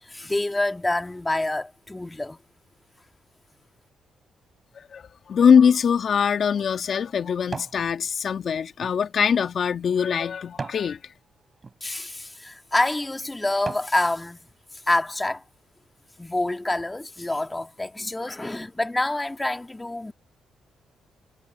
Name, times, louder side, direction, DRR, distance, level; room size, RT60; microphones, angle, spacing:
voice 1, 0.1-2.4 11.8-14.4 14.9-15.4 16.2-20.1, left 2 dB, 20° left, 2.3 m, -27 dB
voice 2, 4.8-11.0, left 7 dB, 60° left, 1.8 m, -22 dB
sound 1, 6.0-7.8 8.3-10.9 11.5-11.8 12.5-12.6 13.1-14.0 14.5-14.6, right 4 dB, 40° right, 3.2 m, -39 dB
supercardioid pair, 50°, 0 cm